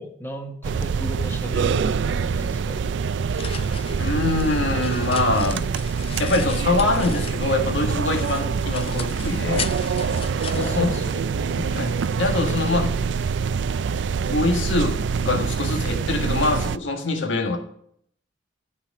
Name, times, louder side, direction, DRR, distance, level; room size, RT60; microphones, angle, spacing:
voice 1, 0.0-2.9 10.5-12.2, equal, 10° left, 3 dB, 1.3 m, -36 dB
sound 1, 0.6-16.8, right 6 dB, 70° right, 0.4 m, -25 dB
sound 2, 3.3-7.7 8.0-11.6, left 7 dB, 30° left, 0.5 m, -37 dB
voice 2, 4.0-5.7 6.2-9.7 10.5-11.0 11.5-13.0 14.3-17.6, left 2 dB, 85° left, 4 dB, 1.6 m, -24 dB
13.0 x 4.8 x 7.2 m, 0.67 s
head